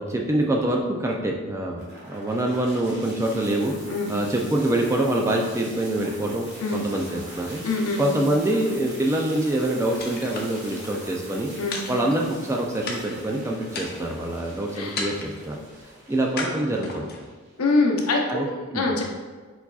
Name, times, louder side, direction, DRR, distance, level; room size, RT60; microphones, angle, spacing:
voice 1, 0.0-3.7 4.1-6.5 6.7-7.6 8.0-11.5 11.9-15.6 16.1-17.3 18.3-18.5 18.7-18.9, right 1 dB, 15° right, 0 dB, 0.3 m, -25 dB
sound 1, 1.8-17.8, right 1 dB, 55° right, 1.4 m, -43 dB
voice 2, 7.6-8.0 11.6-11.8 14.7-15.0 17.6-19.0, left 3 dB, 85° left, 0 dB, 0.7 m, -24 dB
sound 2, 10.0-10.9 11.7-12.5 12.9-13.3 13.7-14.3 15.0-15.5 16.4-17.3, left 3 dB, 45° left, 0.6 m, -34 dB
4.5 x 4.0 x 2.4 m, 1.4 s
head